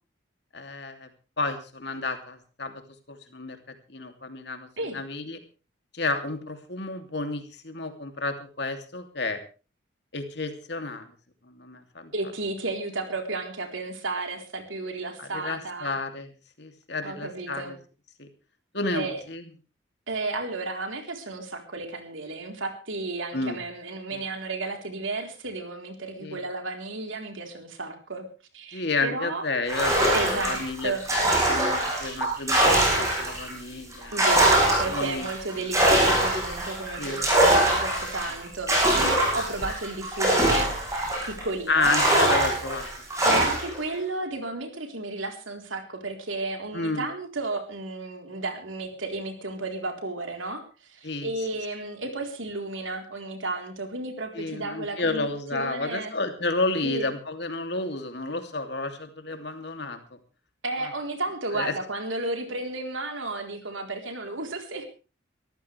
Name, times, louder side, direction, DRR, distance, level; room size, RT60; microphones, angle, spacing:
voice 1, 0.5-1.1 1.4-2.7 3.1-3.6 3.9-5.4 5.9-9.4 10.1-11.1 11.4-12.1 15.2-16.3 16.6-17.8 18.2-18.3 18.7-19.5 23.3-23.6 24.1-24.2 26.2-26.4 28.7-30.9 31.5-34.3 34.9-35.3 37.0-37.2 41.7-42.9 43.4-43.5 46.7-47.1 51.0-51.3 54.3-60.2 60.8-60.9 61.5-61.7, left 3 dB, 60° left, 6 dB, 2.8 m, -31 dB
voice 2, 12.1-16.0 17.0-17.7 18.9-19.2 20.1-28.2 28.5-29.4 30.1-31.0 34.1-41.9 43.2-56.1 56.8-57.1 60.6-64.9, right 2 dB, 90° right, 4 dB, 3.9 m, -33 dB
sound 1, 29.7-33.5 33.9-41.4 41.8-43.8, right 1 dB, 15° right, 7.3 m, -23 dB
23.0 x 14.5 x 3.4 m, 0.34 s
head